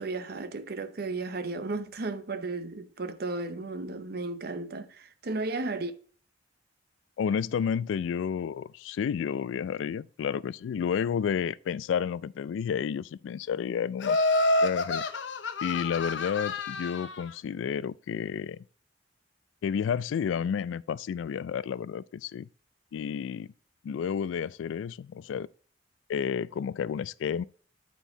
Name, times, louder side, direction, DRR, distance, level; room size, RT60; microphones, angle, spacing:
voice 1, 0.0-5.9, right 3 dB, 55° right, 0.7 m, -34 dB
voice 2, 7.2-14.2 14.6-15.0 15.6-18.6 19.6-22.5 22.9-23.5 23.8-25.5 26.1-27.4, left 7 dB, 90° left, 0.3 m, -31 dB
Laughter, 14.0-17.2, left 2 dB, 75° left, 0.7 m, -28 dB
9.2 x 4.5 x 3.8 m
head